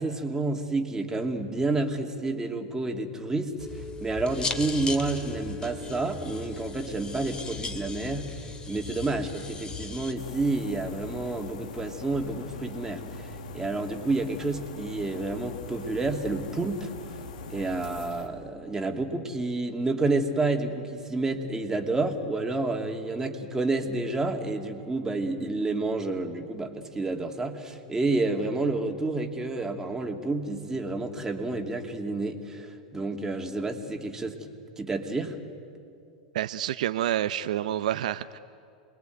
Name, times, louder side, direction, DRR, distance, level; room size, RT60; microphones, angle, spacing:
voice 1, 0.0-3.5 4.0-8.4 8.7-16.9 17.5-34.5 34.8-35.4, right 2 dB, 10° right, 3 dB, 2.7 m, -29 dB
sound 1, 3.6-10.1, left 4 dB, 20° left, 2.8 m, -37 dB
sound 2, 10.2-18.3, left 3 dB, 70° left, 2.2 m, -41 dB
voice 2, 36.3-38.4, right 12 dB, 70° right, 12 dB, 0.7 m, -28 dB
27.5 x 21.5 x 9.4 m, 2.5 s
hypercardioid pair, 100°, 4 cm